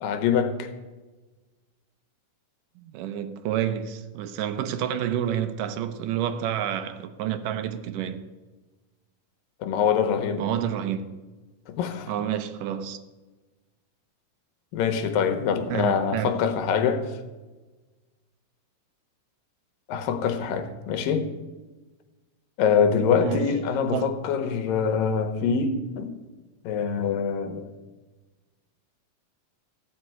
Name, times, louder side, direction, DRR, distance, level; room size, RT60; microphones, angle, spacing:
voice 1, 0.0-0.7 9.6-10.4 11.7-12.1 14.7-17.2 19.9-21.3 22.6-26.2 26.6-27.7, left 6 dB, 90° left, 2.7 m, -24 dB
voice 2, 2.8-8.2 10.4-11.1 12.1-13.0 15.7-16.4 23.2-24.1, right 10 dB, 80° right, 2.3 m, -29 dB
14.5 x 5.9 x 9.1 m
omnidirectional pair, 3.9 m